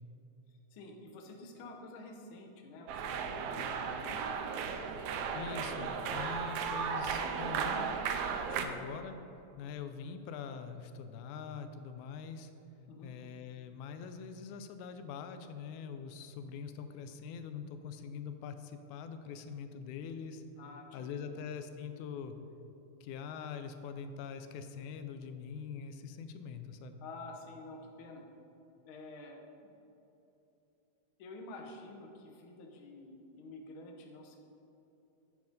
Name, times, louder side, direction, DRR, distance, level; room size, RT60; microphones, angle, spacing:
voice 1, 0.7-4.2 8.5-8.7 12.9-13.1 20.6-21.4 27.0-28.2 28.9-29.7 31.2-34.4, left 2 dB, 65° left, 2 dB, 1.3 m, -49 dB
sound 1, 2.9-8.7, right 6 dB, 80° right, 1.9 m, -35 dB
voice 2, 5.3-8.0 8.6-9.1 9.6-12.5 13.0-20.4 20.9-22.4 23.0-27.0, left 6 dB, 90° left, 8 dB, 2.0 m, -43 dB
9.4 x 4.8 x 5.2 m, 2.9 s
omnidirectional pair, 3.4 m